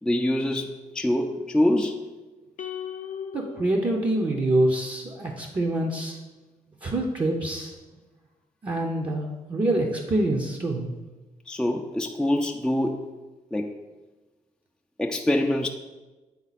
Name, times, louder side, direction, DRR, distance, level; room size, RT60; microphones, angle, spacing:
voice 1, 0.0-2.0 11.5-13.1 13.5-13.8 15.0-15.7, left 1 dB, 5° left, 1 dB, 0.5 m, -25 dB
sound 1, 2.6-5.1, left 8 dB, 60° left, 0.5 m, -38 dB
voice 2, 3.3-6.2 6.8-7.7 8.6-10.9, right 1 dB, 35° right, -2 dB, 0.8 m, -26 dB
8.5 x 3.8 x 4.1 m, 1.2 s
cardioid pair, 80°, 14 cm